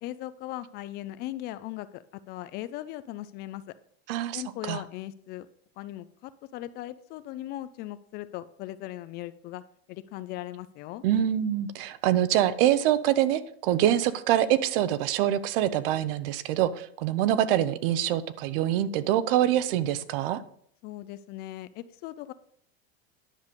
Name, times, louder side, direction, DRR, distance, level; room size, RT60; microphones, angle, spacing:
voice 1, 0.0-3.6 4.3-5.5 5.8-9.6 9.9-11.0 20.8-22.3, left 14 dB, 30° left, 15 dB, 0.4 m, -38 dB
voice 2, 4.1-4.8 11.0-20.4, right 11 dB, 60° right, 15 dB, 0.8 m, -25 dB
10.5 x 6.8 x 5.1 m, 0.65 s
supercardioid pair, 150°, 31 cm